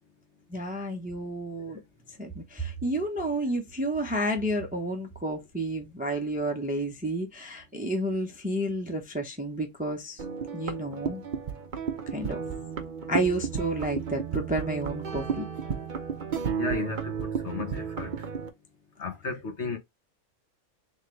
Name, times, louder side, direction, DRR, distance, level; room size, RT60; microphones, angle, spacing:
voice 1, 0.5-1.8 2.2-10.2 10.5-11.2 12.1-12.5 13.1-15.5, right 1 dB, 10° right, 0.7 m, -31 dB
sound 1, 10.2-18.5, right 6 dB, 45° right, 0.7 m, -33 dB
voice 2, 16.6-18.1 19.0-19.8, left 4 dB, 50° left, 1.4 m, -34 dB
3.6 x 3.5 x 3.1 m
omnidirectional pair, 1.5 m